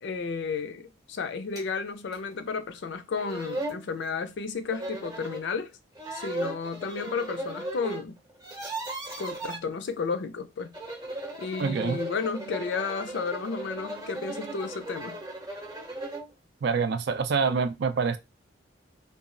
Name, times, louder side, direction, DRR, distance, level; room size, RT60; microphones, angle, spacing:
voice 1, 0.0-5.7 6.1-8.2 9.2-10.7 11.4-15.2, left 5 dB, 65° left, 0.4 m, -32 dB
sound 1, 1.6-1.7 2.1-2.2 2.9-3.0 3.2-3.8 4.7-5.4 6.0-8.0 8.3-9.6 10.6-16.3, right 2 dB, 20° right, 0.7 m, -37 dB
voice 2, 11.6-12.0 16.6-18.2, right 5 dB, 60° right, 0.4 m, -26 dB
2.3 x 2.0 x 3.7 m
head